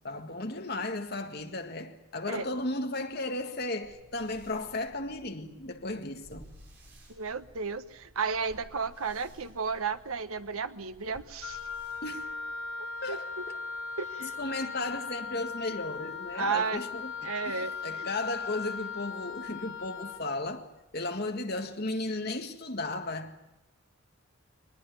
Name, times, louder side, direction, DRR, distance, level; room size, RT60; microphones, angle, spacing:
voice 1, 0.0-6.5 12.0-12.3 13.0-13.6 14.2-23.5, left 2 dB, 45° left, 1.8 m, -35 dB
sound 1, 3.8-12.7, equal, 55° right, 6.6 m, -55 dB
voice 2, 7.1-11.6 13.1-13.4 14.0-14.4 16.3-16.8 17.2-18.1, right 5 dB, 85° right, 1.2 m, -33 dB
Wind instrument woodwind instrument, 11.4-20.3, left 5 dB, 80° left, 5.4 m, -38 dB
22.0 x 20.0 x 9.3 m
head